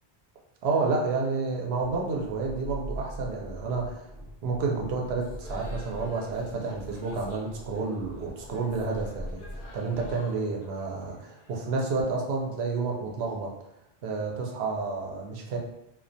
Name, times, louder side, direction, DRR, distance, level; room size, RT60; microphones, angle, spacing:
voice 1, 0.6-4.1 4.4-9.5 9.7-13.5 14.0-15.6, right 4 dB, 75° right, 0 dB, 0.8 m, -30 dB
sound 1, 1.8-10.1, equal, 40° right, 0.8 m, -41 dB
sound 2, 5.2-12.1, left 2 dB, 60° left, 0.7 m, -51 dB
2.3 x 2.2 x 2.5 m, 0.87 s
omnidirectional pair, 1.1 m